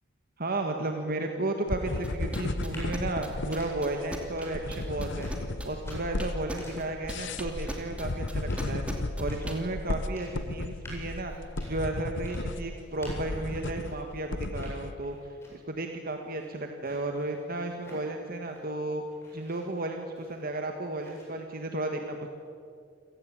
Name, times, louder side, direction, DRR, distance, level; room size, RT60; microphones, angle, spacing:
voice 1, 0.4-5.3 5.6-8.8 9.2-11.3 11.6-19.0 19.3-22.3, right 2 dB, 45° right, 4 dB, 1.8 m, -33 dB
sound 1, 1.7-14.9, left 2 dB, 60° left, 1.0 m, -34 dB
sound 2, 1.9-14.2 14.5-15.8 16.1-18.8 19.1-20.6 21.0-21.2, equal, 15° left, 7.8 m, -50 dB
sound 3, 2.0-9.6, equal, 5° right, 2.9 m, -38 dB
29.0 x 17.5 x 8.8 m, 2.3 s
head